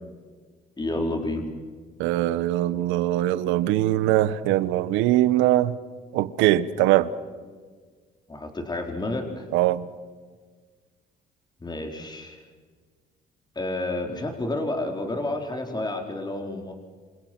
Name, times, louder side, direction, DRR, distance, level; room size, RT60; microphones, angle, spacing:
voice 1, 0.8-1.5 8.3-9.5 11.6-12.4 13.6-16.7, left 2 dB, 20° left, 4.1 m, -30 dB
voice 2, 2.0-5.8 6.1-7.1 9.5-9.9, right 14 dB, 85° right, 1.1 m, -22 dB
27.5 x 26.5 x 6.1 m
supercardioid pair, 75°, 19 cm